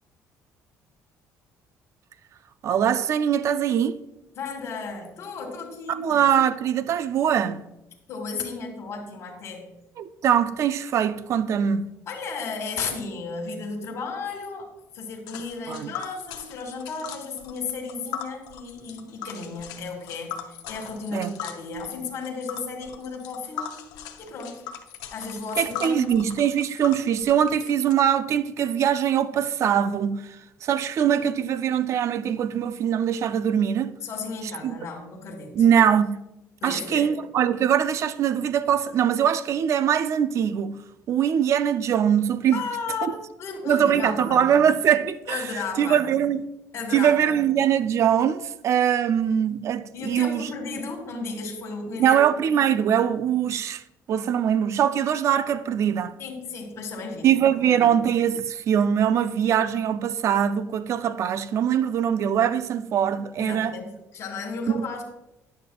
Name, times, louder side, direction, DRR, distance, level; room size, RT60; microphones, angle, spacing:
voice 1, 2.6-4.0 5.9-7.6 10.0-11.9 15.7-15.9 21.1-21.3 25.6-33.9 34.6-34.7 35.6-36.2 36.6-40.8 41.1-42.6 43.0-43.1 43.7-46.4 46.9-50.5 52.0-53.8 54.1-56.1 57.2-63.8 64.7-65.0, right 9 dB, 50° right, 0.4 m, -22 dB
voice 2, 4.4-6.2 8.1-9.7 12.1-23.8 24.2-24.6 25.1-26.2 34.0-35.6 36.6-37.1 42.5-44.5 45.3-46.0 46.7-47.4 49.9-52.2 56.2-57.9 63.4-65.0, left 4 dB, 50° left, 1.6 m, -34 dB
Tick, 15.3-27.9, left 8 dB, 90° left, 0.7 m, -39 dB
10.0 x 6.6 x 2.3 m
cardioid pair, 120°, 6 cm